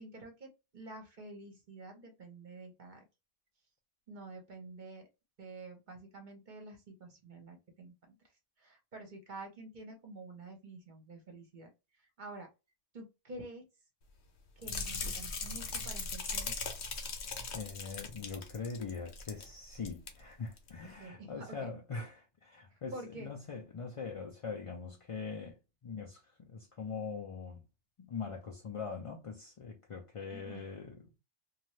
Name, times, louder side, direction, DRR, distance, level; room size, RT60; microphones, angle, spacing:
voice 1, 0.0-3.0 4.1-5.1 5.4-8.2 8.6-11.7 12.0-12.5 12.9-13.6 14.6-16.5 21.0-21.7 22.7-23.3 30.3-30.6, right 2 dB, 45° right, 0.9 m, -49 dB
sound 1, 14.6-19.5 19.7-20.1 20.6-20.7, left 4 dB, 70° left, 1.0 m, -39 dB
voice 2, 17.5-27.6 28.0-31.1, left 5 dB, 50° left, 0.4 m, -42 dB
2.7 x 2.4 x 3.1 m
omnidirectional pair, 1.2 m